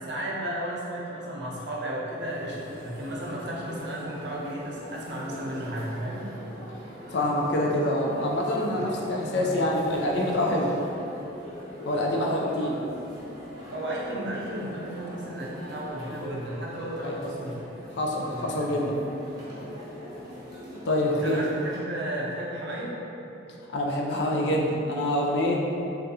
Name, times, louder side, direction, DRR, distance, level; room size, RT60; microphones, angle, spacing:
voice 1, 0.0-6.3 8.8-10.6 12.1-12.4 12.7-12.8 13.7-17.6 18.3-18.7 21.1-23.0, right 1 dB, 60° right, -5 dB, 0.6 m, -34 dB
sound 1, 2.2-21.8, left 1 dB, 20° right, 0.7 m, -42 dB
voice 2, 7.1-10.7 11.9-12.7 16.9-17.2 17.9-19.0 20.9-21.4 23.7-25.6, left 1 dB, 60° left, -1 dB, 0.4 m, -26 dB
3.4 x 2.4 x 2.7 m, 3.0 s
head